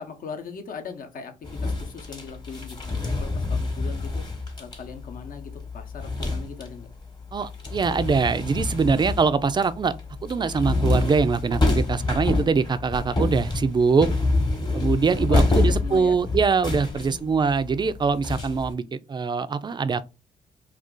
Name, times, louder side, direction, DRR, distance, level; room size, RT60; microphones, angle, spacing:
voice 1, 0.0-1.3 1.6-4.2 4.6-6.9 15.3-16.2 16.9-17.4, left 5 dB, 60° left, 0.8 m, -39 dB
sound 1, 1.4-6.9 7.2-18.7, left 2 dB, 25° left, 1.0 m, -27 dB
voice 2, 7.3-9.9 10.2-14.1 14.7-20.0, right 5 dB, 30° right, 0.3 m, -23 dB
2.5 x 2.4 x 3.7 m
cardioid pair, 70°, 16 cm